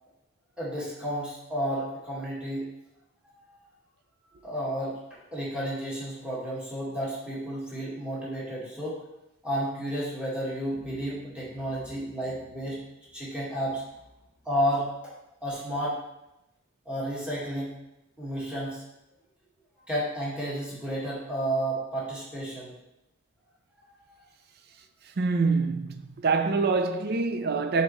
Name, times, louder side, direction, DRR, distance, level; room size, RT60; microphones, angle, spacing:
voice 1, 0.6-2.7 3.3-3.6 4.4-5.0 5.3-9.0 9.4-12.8 13.1-13.8 14.4-15.1 15.4-16.0 16.9-17.7 18.2-18.8 19.9-22.7 23.9-24.2, right 1 dB, 5° right, 2.0 m, -32 dB
voice 2, 25.2-27.8, right 4 dB, 50° right, 0.5 m, -25 dB
9.7 x 4.0 x 3.2 m
head